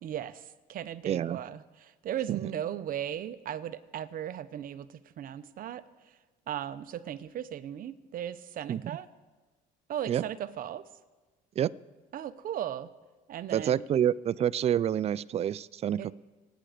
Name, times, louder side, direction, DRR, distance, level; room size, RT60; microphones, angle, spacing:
voice 1, 0.0-6.2 6.5-9.1 9.9-10.8 12.1-12.9 13.3-13.8 16.0-16.1, right 10 dB, 55° right, 0.8 m, -37 dB
voice 2, 1.1-1.4 2.3-2.4 8.7-8.8 10.1-10.2 11.6-11.7 13.5-16.1, right 10 dB, 40° right, 0.4 m, -28 dB
26.0 x 9.1 x 5.0 m
cardioid pair, 110°, 17 cm